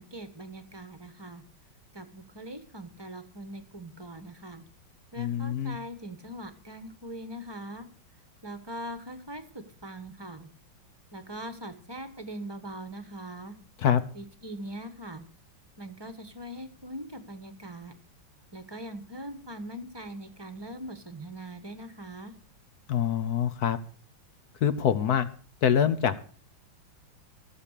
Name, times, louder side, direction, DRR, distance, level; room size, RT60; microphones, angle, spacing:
voice 1, 0.0-1.4 1.9-4.6 5.1-7.9 8.4-10.5 11.1-13.5 14.1-15.2 15.8-17.9 18.5-22.3, right 1 dB, 15° right, 9 dB, 1.0 m, -41 dB
voice 2, 5.2-5.8 13.8-14.0 22.9-23.8 24.6-25.3 25.6-26.2, left 9 dB, 60° left, 12 dB, 1.2 m, -25 dB
16.0 x 7.2 x 6.6 m, 0.42 s
omnidirectional pair, 2.2 m